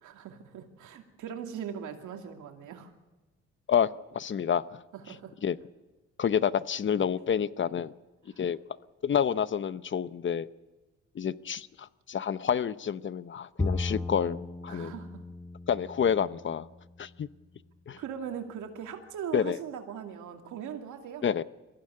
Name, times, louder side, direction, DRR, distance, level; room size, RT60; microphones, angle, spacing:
voice 1, 0.0-2.9 4.9-5.4 7.2-7.3 8.3-8.4 14.7-15.3 18.0-21.3, right 8 dB, 80° right, 4 dB, 2.6 m, -40 dB
voice 2, 3.7-4.8 5.4-5.6 6.2-7.9 8.4-8.6 9.0-10.5 11.2-14.9 15.7-16.7 17.0-17.3 17.9-18.0 19.3-19.6 21.2-21.4, left 8 dB, 40° left, 16 dB, 0.8 m, -28 dB
Bowed string instrument, 13.6-17.0, left 3 dB, 10° left, 0.7 m, -36 dB
23.0 x 15.5 x 9.8 m, 1.2 s
cardioid pair, 90°, 30 cm